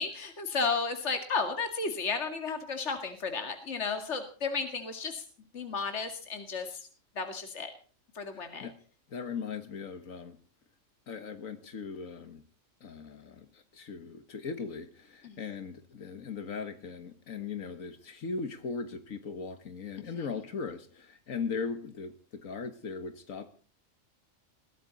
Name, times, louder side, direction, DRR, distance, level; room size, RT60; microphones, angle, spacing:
voice 1, 0.0-5.2 5.5-6.9 7.2-7.7 8.1-8.7 15.2-15.4 20.0-20.3, left 4 dB, 60° left, 6 dB, 2.4 m, -33 dB
voice 2, 8.3-8.8 9.1-10.4 11.1-12.4 12.8-23.5, left 5 dB, 85° left, 8 dB, 1.9 m, -39 dB
21.5 x 16.5 x 4.1 m, 0.40 s
omnidirectional pair, 1.4 m